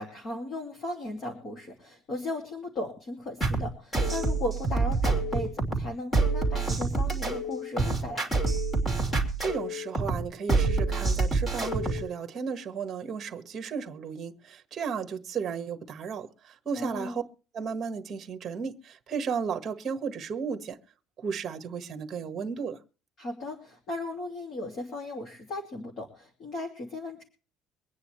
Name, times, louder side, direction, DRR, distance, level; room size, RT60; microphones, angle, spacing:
voice 1, 0.0-8.4 16.7-17.2 23.2-27.2, left 1 dB, 35° left, 2.6 m, -36 dB
sound 1, 3.4-12.1, right 3 dB, 15° left, 3.0 m, -27 dB
voice 2, 9.4-16.3 16.6-17.2 17.5-20.8 21.2-22.8, right 6 dB, 25° right, 1.6 m, -34 dB
24.0 x 9.6 x 3.2 m
cardioid pair, 175°, 0 cm